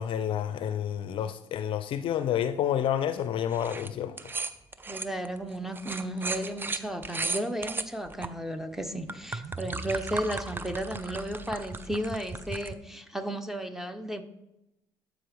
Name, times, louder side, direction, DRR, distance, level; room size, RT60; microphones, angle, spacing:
voice 1, 0.0-4.2, left 10 dB, 60° left, 0.5 m, -29 dB
sound 1, 3.5-3.9 4.2-8.3 8.8-12.7, right 3 dB, 20° right, 0.5 m, -35 dB
voice 2, 4.9-14.2, right 1 dB, 5° right, 0.9 m, -34 dB
13.5 x 5.0 x 3.5 m
supercardioid pair, 65°, 10 cm